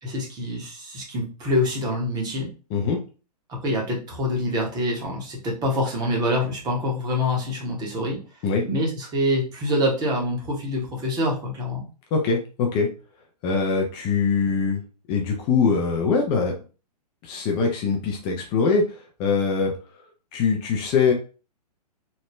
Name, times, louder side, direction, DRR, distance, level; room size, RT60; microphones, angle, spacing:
voice 1, 0.0-2.5 3.5-8.2 8.6-11.8, left 1 dB, 20° right, -1 dB, 0.9 m, -25 dB
voice 2, 12.1-12.9 13.4-14.8 15.1-16.5 17.2-19.7 20.3-21.1, left 5 dB, 25° left, 2 dB, 0.4 m, -22 dB
3.2 x 2.1 x 3.0 m, 0.35 s
figure-of-eight pair, 120°, 21 cm